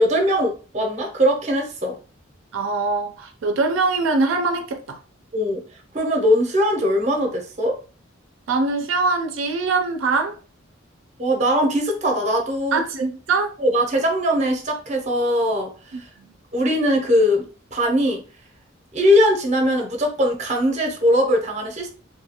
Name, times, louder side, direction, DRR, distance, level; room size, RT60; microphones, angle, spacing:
voice 1, 0.0-2.0 5.3-5.6 5.9-7.8 11.2-12.8 13.6-15.7 16.0-16.1 16.5-17.4 17.7-18.2 18.9-21.9, equal, 35° right, 0.6 m, -20 dB
voice 2, 2.5-5.0 8.5-10.3 12.7-13.5 16.2-16.3, right 3 dB, 85° right, 0.4 m, -22 dB
2.6 x 2.3 x 2.8 m
head